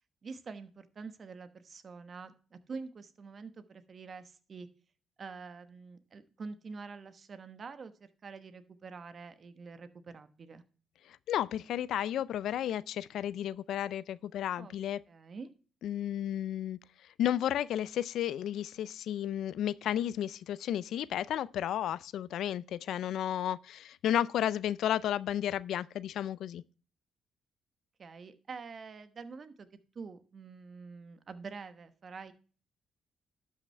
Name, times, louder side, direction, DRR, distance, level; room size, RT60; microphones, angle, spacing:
voice 1, 0.2-4.7 5.2-10.6 14.6-14.7 15.1-15.5 28.0-29.7 29.9-32.3, right 4 dB, 45° right, 1.1 m, -46 dB
voice 2, 11.1-15.0 15.8-16.8 17.2-26.6, left 11 dB, 75° left, 0.3 m, -33 dB
12.0 x 5.7 x 3.3 m
cardioid pair, 90°, 0 cm